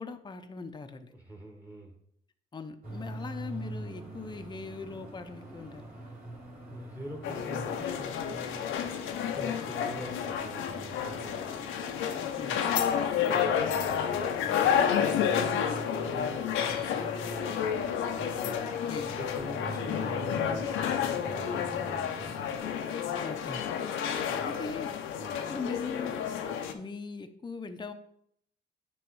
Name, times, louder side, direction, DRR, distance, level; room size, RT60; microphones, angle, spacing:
voice 1, 0.0-1.1 2.5-5.8 12.2-12.6 18.9-19.2 23.2-23.6 24.4-25.0 25.5-27.9, left 4 dB, 20° left, 7 dB, 0.6 m, -40 dB
voice 2, 1.1-2.0 6.7-8.7 9.3-11.5 13.3-14.8 15.3-18.7 19.1-22.6 24.3-24.7 25.2-25.4, right 1 dB, 10° right, 3 dB, 1.2 m, -44 dB
sound 1, 2.8-22.6, right 2 dB, 45° right, 2.7 m, -45 dB
sound 2, 7.2-26.7, left 8 dB, 90° left, 0.7 m, -30 dB
9.2 x 3.1 x 4.7 m, 0.70 s
cardioid pair, 90°, 20 cm